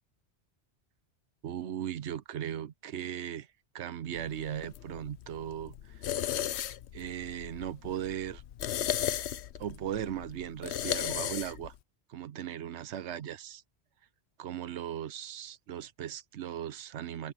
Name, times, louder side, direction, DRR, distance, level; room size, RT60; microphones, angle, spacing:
voice 1, 1.4-3.5 3.7-6.1 6.9-8.4 9.6-11.7 12.1-13.6 14.4-17.3, right 10 dB, 85° right, 1.0 m, -38 dB
sound 1, 4.2-11.8, left 11 dB, 75° left, 1.0 m, -36 dB
omnidirectional pair, 1.1 m